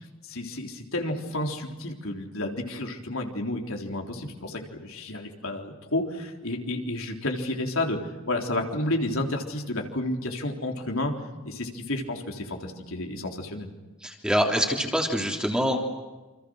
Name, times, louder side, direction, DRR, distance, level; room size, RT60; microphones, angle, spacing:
voice 1, 0.2-11.1 11.4-13.7, left 1 dB, 65° left, 2 dB, 3.8 m, -31 dB
voice 2, 14.0-15.8, equal, 5° right, 1 dB, 3.4 m, -25 dB
29.0 x 27.0 x 6.5 m, 1.2 s
head